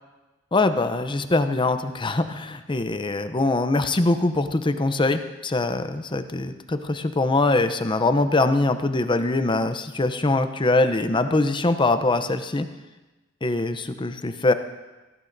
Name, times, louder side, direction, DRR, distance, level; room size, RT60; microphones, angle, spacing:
voice 1, 0.5-12.7 13.4-14.5, left 2 dB, 25° left, 10 dB, 0.6 m, -23 dB
17.0 x 15.0 x 2.7 m, 1.1 s
head